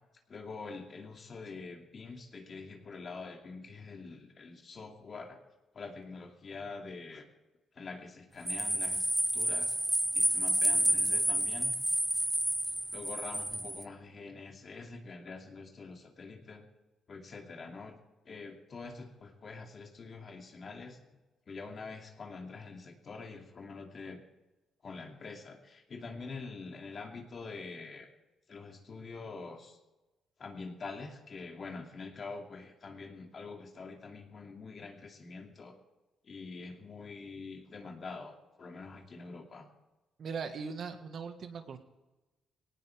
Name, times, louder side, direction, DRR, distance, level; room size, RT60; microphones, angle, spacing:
voice 1, 0.3-5.4 5.7-7.3 7.7-9.8 10.1-11.7 12.9-16.7 17.1-18.0 18.2-21.0 21.5-24.2 24.8-28.1 28.5-29.8 30.4-35.8 36.2-39.7, left 4 dB, 45° left, 2 dB, 2.7 m, -45 dB
sound 1, 8.5-13.8, right 1 dB, 10° right, 0.9 m, -30 dB
voice 2, 40.2-41.8, right 5 dB, 55° right, 7 dB, 1.8 m, -39 dB
18.5 x 18.5 x 3.6 m, 1.1 s
cardioid pair, 90°, 0 cm